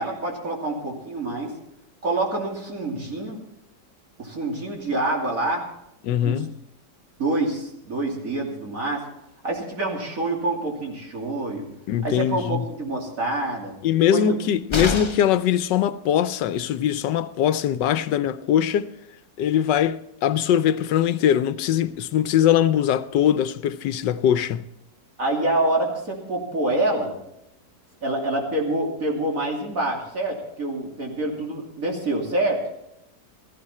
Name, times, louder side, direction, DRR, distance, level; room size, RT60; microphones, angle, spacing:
voice 1, 0.0-1.5 2.0-3.4 4.2-5.7 6.2-6.4 7.2-9.0 9.4-11.7 12.0-13.7 14.1-14.4 25.2-27.1 28.0-32.6, right 2 dB, 50° right, 3.1 m, -26 dB
voice 2, 6.0-6.5 11.9-12.6 13.8-18.9 19.4-24.6, left 10 dB, 85° left, 1.3 m, -21 dB
sound 1, 14.7-15.4 17.4-17.5 17.8-17.9, left 3 dB, 30° left, 0.5 m, -27 dB
16.5 x 14.5 x 4.3 m
omnidirectional pair, 1.8 m